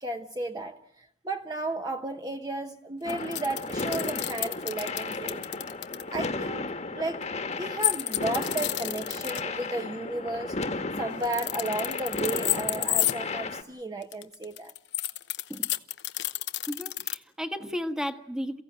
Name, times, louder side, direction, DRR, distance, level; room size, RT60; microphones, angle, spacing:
voice 1, 0.0-5.4 6.1-7.2 7.5-14.7, right 2 dB, 20° right, 5 dB, 0.9 m, -34 dB
sound 1, 3.0-13.6, left 3 dB, 40° left, 1.4 m, -34 dB
sound 2, 3.1-6.0 7.8-9.4 11.1-13.1 14.0-17.1, left 14 dB, 85° left, 0.9 m, -30 dB
voice 2, 16.7-18.6, equal, 5° right, 7 dB, 1.3 m, -34 dB
28.5 x 16.0 x 9.0 m, 0.79 s
head